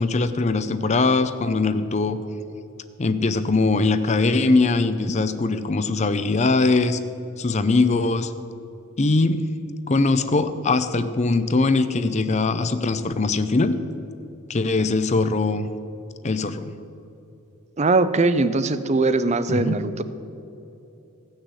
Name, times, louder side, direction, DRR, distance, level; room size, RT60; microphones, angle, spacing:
voice 1, 0.0-2.2 3.0-7.0 7.4-8.3 9.0-9.4 9.9-13.8 14.5-15.7 16.2-16.7 19.5-19.8, left 3 dB, 30° left, 11 dB, 0.5 m, -21 dB
voice 2, 17.8-20.0, right 3 dB, 30° right, 13 dB, 0.5 m, -21 dB
15.5 x 6.4 x 8.0 m, 2.8 s
head